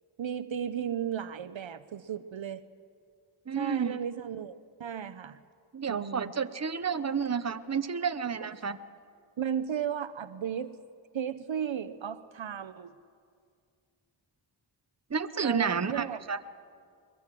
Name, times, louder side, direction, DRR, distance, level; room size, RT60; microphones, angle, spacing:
voice 1, 0.2-2.6 3.5-5.4 5.9-6.3 8.4-8.5 9.4-10.8 11.1-12.9 15.4-16.2, right 8 dB, 70° right, 13 dB, 0.8 m, -35 dB
voice 2, 3.5-3.9 5.7-8.8 15.1-16.4, right 6 dB, 35° right, 11 dB, 0.9 m, -30 dB
22.5 x 21.5 x 7.6 m, 2.2 s
wide cardioid pair, 60°, 48 cm